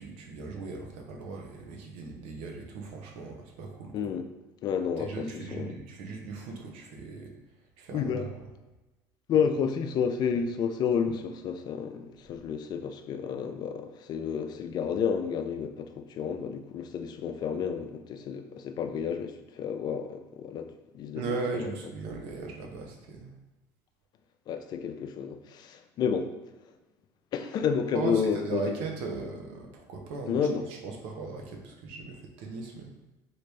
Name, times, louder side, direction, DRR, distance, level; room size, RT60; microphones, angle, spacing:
voice 1, 0.0-3.9 5.0-7.3 7.8-8.4 21.1-23.3 27.9-30.5 30.8-32.9, right 4 dB, 75° right, 2 dB, 0.7 m, -37 dB
voice 2, 3.9-4.3 4.6-5.8 7.9-8.3 9.3-21.2 21.5-21.7 24.5-26.3 27.3-28.8 30.3-30.7, left 7 dB, 50° left, 7 dB, 0.4 m, -30 dB
3.1 x 2.5 x 3.3 m, 1.1 s
supercardioid pair, 90°, 9 cm